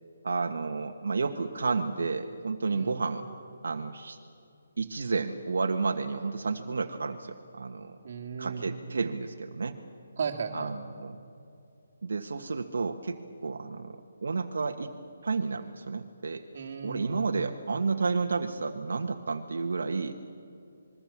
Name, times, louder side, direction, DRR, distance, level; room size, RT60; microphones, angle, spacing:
voice 1, 0.2-3.2 3.6-4.2 4.8-8.0 8.4-9.8 10.5-11.2 12.0-14.9 15.2-16.4 16.8-20.1, right 4 dB, 70° right, 5 dB, 1.4 m, -31 dB
voice 2, 2.7-3.0 8.0-8.6 10.2-10.7 16.5-17.2, right 5 dB, 35° right, 0 dB, 2.8 m, -35 dB
27.0 x 22.0 x 7.4 m, 2.6 s
hypercardioid pair, 180°, 0 cm